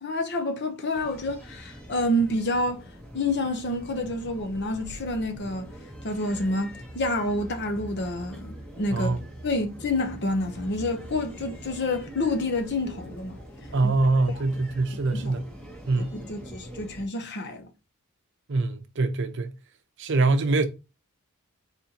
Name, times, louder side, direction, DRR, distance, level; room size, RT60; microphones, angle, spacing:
voice 1, 0.0-2.8 3.1-5.7 6.0-13.4 13.8-13.9 15.1-15.3 16.3-17.7, left 1 dB, 50° left, 0.8 m, -28 dB
sound 1, 0.9-17.1, equal, 5° left, 1.1 m, -43 dB
voice 2, 13.7-15.5 15.9-16.2 18.5-19.5 20.0-20.7, right 3 dB, 55° right, 0.6 m, -24 dB
4.2 x 4.0 x 2.9 m
head